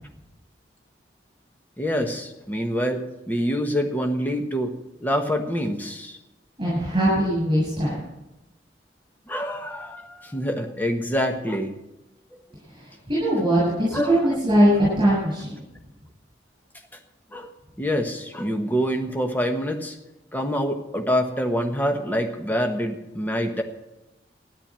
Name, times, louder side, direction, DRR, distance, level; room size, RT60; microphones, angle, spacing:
voice 1, 1.8-4.7 5.0-6.2 9.3-11.7 13.9-14.4 17.3-17.5 17.8-20.0 20.3-23.6, equal, 10° left, 4 dB, 1.2 m, -26 dB
voice 2, 6.6-8.0 12.7-14.7 15.0-15.6, right 1 dB, 25° right, -8 dB, 7.3 m, -21 dB
13.5 x 10.5 x 7.5 m, 0.98 s
head